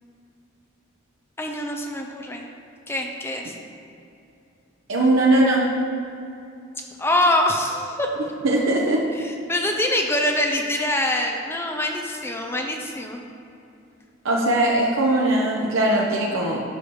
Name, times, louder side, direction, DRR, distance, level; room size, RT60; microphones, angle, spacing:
voice 1, 1.4-2.5 2.9-3.6 7.0-8.1 9.1-13.2, left 1 dB, 10° left, 2 dB, 0.6 m, -24 dB
voice 2, 4.9-5.6 8.4-9.0 14.2-16.6, right 1 dB, 75° right, -2 dB, 1.0 m, -20 dB
8.2 x 5.5 x 6.3 m, 2.7 s
head